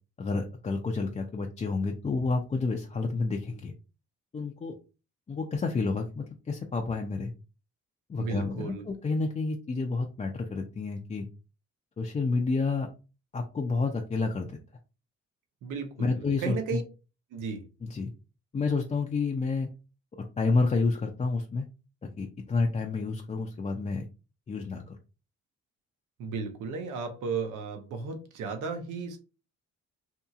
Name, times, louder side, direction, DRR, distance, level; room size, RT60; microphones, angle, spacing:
voice 1, 0.2-3.7 4.3-4.8 5.3-7.3 8.1-11.3 12.0-12.9 13.3-14.6 16.0-16.8 17.8-18.1 18.5-19.7 20.4-21.7 22.0-24.0 24.5-25.0, left 3 dB, 25° left, 0.4 m, -29 dB
voice 2, 8.2-8.8 15.6-16.8 17.3-17.6 26.2-29.2, right 5 dB, 90° right, 0.7 m, -34 dB
2.8 x 2.7 x 2.3 m
cardioid pair, 90°, 30 cm